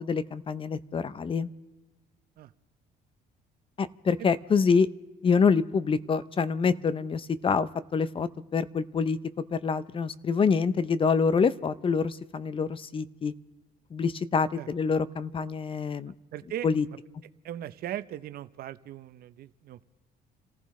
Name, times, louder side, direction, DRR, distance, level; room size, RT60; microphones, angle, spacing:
voice 1, 0.0-1.5 3.8-4.9 5.2-9.2 9.5-13.3 13.9-16.1 16.6-16.8, left 5 dB, 30° left, 16 dB, 0.6 m, -26 dB
voice 2, 16.3-16.7 17.4-19.9, right 12 dB, 65° right, 13 dB, 0.7 m, -38 dB
29.5 x 15.0 x 3.2 m, 1.2 s
cardioid pair, 110°, 17 cm